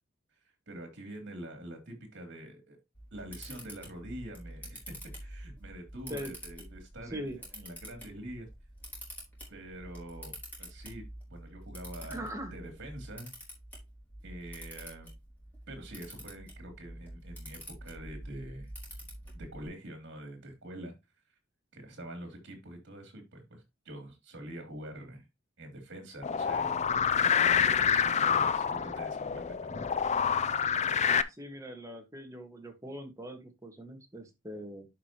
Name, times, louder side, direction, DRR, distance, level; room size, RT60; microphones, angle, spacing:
voice 1, 0.7-2.8 3.1-4.9 5.2-8.5 9.5-13.3 14.2-15.1 15.7-18.7 19.3-20.9 21.7-25.3 25.6-26.7 27.2-29.8, right 1 dB, 60° right, 4 dB, 3.0 m, -45 dB
Camera, 2.9-19.7, equal, 10° left, 3.8 m, -47 dB
voice 2, 12.1-12.5 31.4-34.9, equal, 15° right, 4 dB, 1.7 m, -41 dB
sound 1, 26.2-31.2, left 7 dB, 35° left, 0.4 m, -27 dB
11.0 x 5.0 x 2.9 m, 0.22 s
head